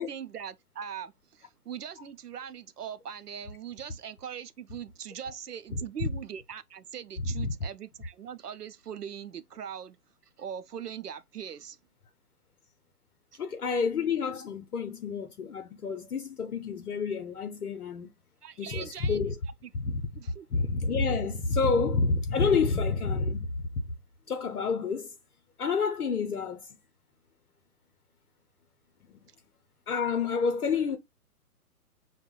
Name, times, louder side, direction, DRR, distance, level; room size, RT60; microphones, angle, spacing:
voice 1, 0.0-10.0 10.4-11.8 13.3-13.4 18.4-19.2 19.6-19.7 20.2-20.5, right 8 dB, 85° right, 0.5 m, -41 dB
voice 2, 13.4-18.1 18.6-19.4 19.7-20.0 20.5-23.5 24.3-25.1 25.6-26.7 29.1-29.2 29.9-31.0, left 4 dB, 75° left, 0.6 m, -29 dB
5.8 x 2.2 x 2.2 m
figure-of-eight pair, 125°, 46 cm